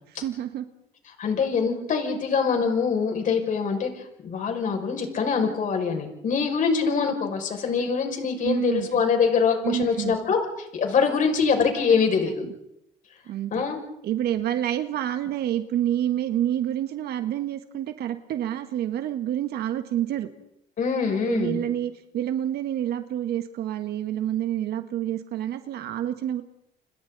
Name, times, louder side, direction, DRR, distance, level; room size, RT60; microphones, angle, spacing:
voice 1, 0.1-0.6 8.4-9.0 9.6-10.2 13.3-13.6 14.0-20.3 21.1-26.4, right 11 dB, 70° right, 8 dB, 1.5 m, -28 dB
voice 2, 1.2-10.4 10.7-12.5 13.5-13.8 20.8-21.6, left 5 dB, 50° left, 3 dB, 6.1 m, -24 dB
29.0 x 28.0 x 4.1 m, 0.79 s
cardioid pair, 110°, 17 cm